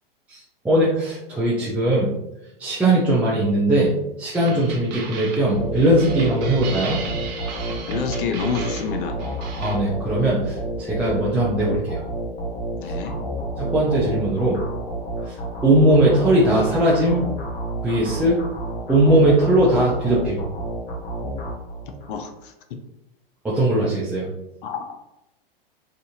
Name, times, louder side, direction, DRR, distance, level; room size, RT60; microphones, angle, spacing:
voice 1, 0.3-2.1 2.6-3.9 4.2-7.0 9.6-12.0 13.6-14.6 15.3-15.4 15.6-17.3 17.8-18.4 18.9-20.4 23.4-24.3, right 1 dB, 5° right, -8 dB, 0.4 m, -19 dB
sound 1, 4.3-9.8, right 5 dB, 50° right, 0.7 m, -36 dB
sound 2, 5.5-22.2, right 1 dB, 30° left, 0.7 m, -30 dB
voice 2, 7.9-9.2 12.7-13.1 22.1-22.8 24.6-25.0, left 6 dB, 60° left, 5 dB, 0.5 m, -28 dB
2.6 x 2.4 x 2.7 m, 0.86 s
hypercardioid pair, 115°, 29 cm